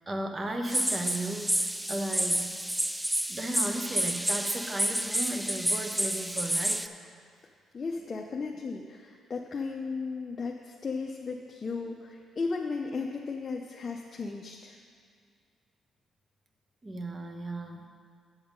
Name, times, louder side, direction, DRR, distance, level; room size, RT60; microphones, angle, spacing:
voice 1, 0.1-2.5 3.3-6.8 16.8-17.9, right 1 dB, 25° right, 4 dB, 1.0 m, -35 dB
sound 1, 0.7-6.9, right 1 dB, 5° right, 0.3 m, -29 dB
voice 2, 7.7-14.8, left 4 dB, 35° left, 0 dB, 0.6 m, -35 dB
7.9 x 7.2 x 5.1 m, 2.1 s
cardioid pair, 90°, 0 cm